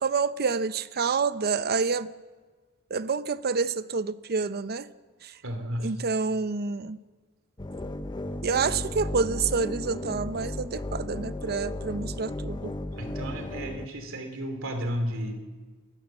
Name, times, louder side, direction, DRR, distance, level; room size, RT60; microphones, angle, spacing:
voice 1, 0.0-2.1 2.9-4.9 5.8-7.0 8.4-12.7, right 5 dB, 45° right, 0.6 m, -28 dB
voice 2, 5.4-5.9 8.8-8.9 13.0-15.4, equal, 65° right, 3.0 m, -33 dB
sound 1, 7.6-13.9, left 1 dB, 20° left, 0.8 m, -35 dB
28.5 x 13.5 x 7.5 m
head